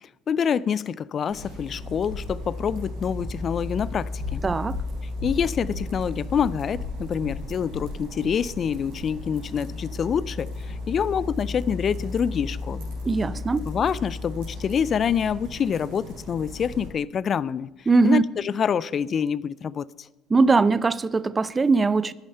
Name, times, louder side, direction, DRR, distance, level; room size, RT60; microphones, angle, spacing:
voice 1, 0.3-4.4 5.2-12.9 13.7-17.7 18.0-19.9, left 7 dB, 45° left, 0.3 m, -26 dB
sound 1, 1.3-16.9, left 2 dB, 80° right, 4.0 m, -34 dB
voice 2, 4.4-4.8 13.0-13.7 17.9-18.2 20.3-22.1, right 4 dB, 25° right, 0.5 m, -20 dB
11.0 x 9.7 x 5.5 m
hypercardioid pair, 65°, 0 cm